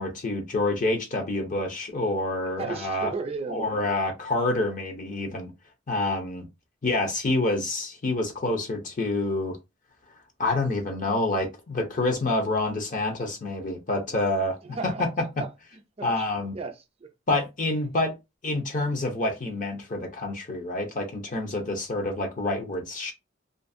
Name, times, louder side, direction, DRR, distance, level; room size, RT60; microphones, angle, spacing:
voice 1, 0.0-3.1 3.5-5.5 5.9-6.5 6.8-9.6 10.4-14.6 15.0-15.1 16.0-16.5 17.3-18.1 18.4-23.1, left 2 dB, 40° left, 0.6 m, -27 dB
voice 2, 2.6-4.1 14.7-16.2 16.5-17.1, right 4 dB, 30° right, 0.4 m, -36 dB
2.5 x 2.4 x 2.5 m
head